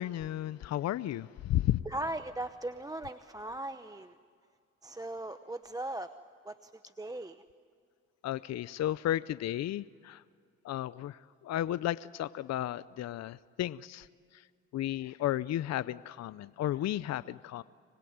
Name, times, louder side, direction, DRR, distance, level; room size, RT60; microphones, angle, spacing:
voice 1, 0.0-1.8 8.2-10.2 10.6-14.1 14.3-14.4 14.7-17.6, left 13 dB, 60° left, 17 dB, 0.6 m, -33 dB
voice 2, 1.9-4.2 4.8-6.1 6.4-6.7 7.0-7.4, right 1 dB, 10° right, 10 dB, 0.8 m, -38 dB
25.5 x 20.5 x 9.4 m, 2.2 s
cardioid pair, 90°, 30 cm